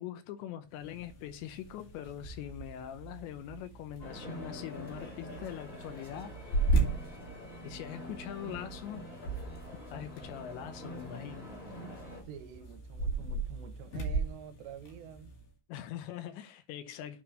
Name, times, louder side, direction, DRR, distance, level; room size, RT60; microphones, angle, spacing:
voice 1, 0.0-6.3 7.6-9.1 9.9-11.5 15.7-17.2, left 11 dB, 85° left, 3.1 m, -42 dB
sound 1, 0.7-15.5, right 3 dB, 65° left, 3.5 m, -37 dB
sound 2, 2.6-8.9, right 9 dB, 35° right, 2.6 m, -54 dB
sound 3, 4.0-12.2, left 1 dB, 25° left, 1.4 m, -46 dB
voice 2, 12.3-15.4, right 8 dB, 85° right, 2.8 m, -48 dB
8.4 x 3.8 x 6.3 m
omnidirectional pair, 5.1 m